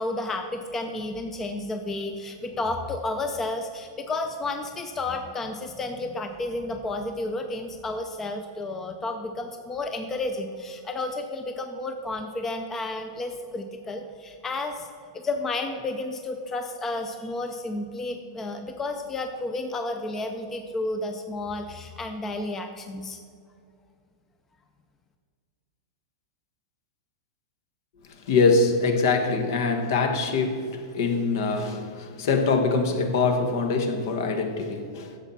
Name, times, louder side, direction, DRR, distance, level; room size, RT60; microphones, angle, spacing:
voice 1, 0.0-14.9 15.1-23.2, left 2 dB, 15° left, 6 dB, 0.5 m, -31 dB
voice 2, 28.3-35.1, left 4 dB, 60° left, 6 dB, 1.2 m, -24 dB
10.5 x 7.1 x 4.1 m, 2.3 s
supercardioid pair, 150°, 2 cm